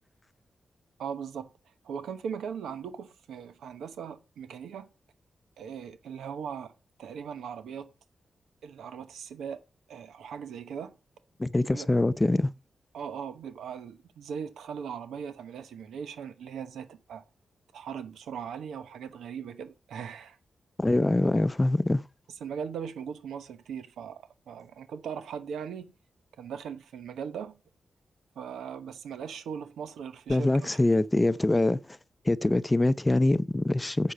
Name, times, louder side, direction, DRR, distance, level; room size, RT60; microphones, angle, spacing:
voice 1, 1.0-1.5 1.8-4.9 5.6-6.7 7.0-7.9 8.6-9.6 9.9-11.0 11.7-11.9 12.9-17.2 17.7-20.4 22.4-25.9 26.4-27.6 28.4-30.8, right 7 dB, 85° right, 1.0 m, -39 dB
voice 2, 11.4-12.5 20.8-22.1 30.3-32.0 32.2-34.1, left 2 dB, 20° left, 0.6 m, -24 dB
7.6 x 6.4 x 5.7 m
supercardioid pair, 45°, 0 cm